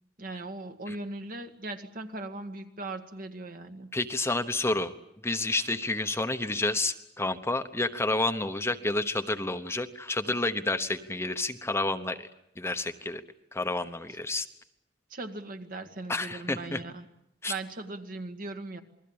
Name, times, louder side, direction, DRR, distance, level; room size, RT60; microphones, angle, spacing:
voice 1, 0.2-3.9 15.1-17.0 17.5-18.8, right 2 dB, 50° right, 6 dB, 1.9 m, -39 dB
voice 2, 3.9-4.9 5.2-12.3 12.6-13.2 13.5-14.5 16.1-16.8 17.4-17.5, left 2 dB, 15° left, 8 dB, 1.0 m, -30 dB
28.5 x 21.0 x 8.7 m, 0.80 s
head